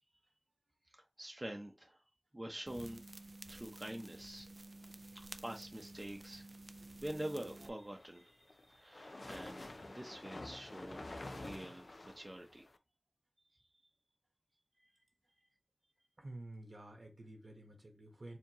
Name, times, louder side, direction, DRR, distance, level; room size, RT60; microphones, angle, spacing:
voice 1, 0.9-2.0 2.3-3.0 3.5-4.5 5.1-6.4 7.0-12.7 13.5-13.7, right 1 dB, 25° right, 0.7 m, -46 dB
sound 1, 2.7-7.7, right 2 dB, 50° right, 0.4 m, -52 dB
sound 2, 7.7-12.8, left 2 dB, 65° left, 0.4 m, -49 dB
voice 2, 16.2-18.4, right 1 dB, 70° right, 1.2 m, -50 dB
4.6 x 2.9 x 2.9 m
wide cardioid pair, 60°, 0 cm